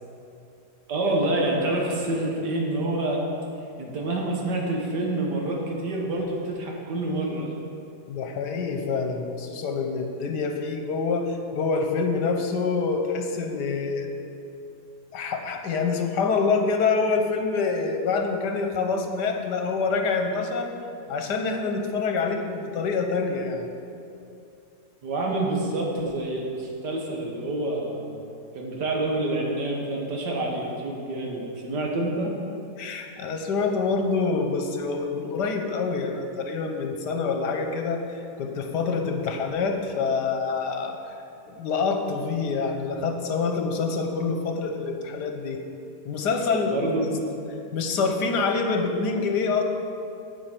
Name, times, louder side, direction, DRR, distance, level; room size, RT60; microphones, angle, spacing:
voice 1, 0.9-3.2 3.8-7.5 25.0-28.1 28.5-32.3 46.7-47.1, right 2 dB, 85° right, -1 dB, 2.0 m, -27 dB
voice 2, 8.1-14.1 15.1-20.7 21.1-23.7 32.8-41.0 41.5-45.6 46.0-47.0 47.7-49.6, left 4 dB, 80° left, 4 dB, 1.6 m, -26 dB
9.1 x 7.7 x 5.9 m, 2.6 s
omnidirectional pair, 1.8 m